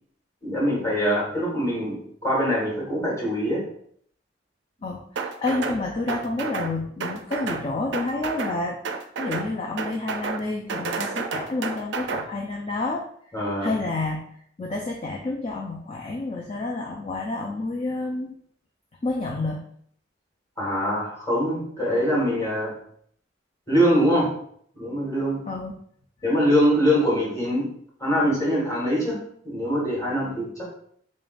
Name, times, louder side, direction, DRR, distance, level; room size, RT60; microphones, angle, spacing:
voice 1, 0.4-3.6 13.3-13.7 20.6-22.7 23.7-24.3 24.7-25.4 26.2-27.7 28.0-29.2 29.4-30.7, equal, 15° left, -5 dB, 1.6 m, -23 dB
voice 2, 4.8-8.8 9.2-13.0 13.6-18.3 19.0-19.6 25.5-25.7, left 2 dB, 35° left, -1 dB, 0.4 m, -29 dB
sound 1, 5.2-5.8 6.1-6.7 7.0-7.6 7.9-8.6 8.8-9.5 9.8-10.4 10.7-12.2, right 4 dB, 65° right, 0.4 m, -30 dB
3.8 x 3.6 x 2.5 m, 0.63 s
head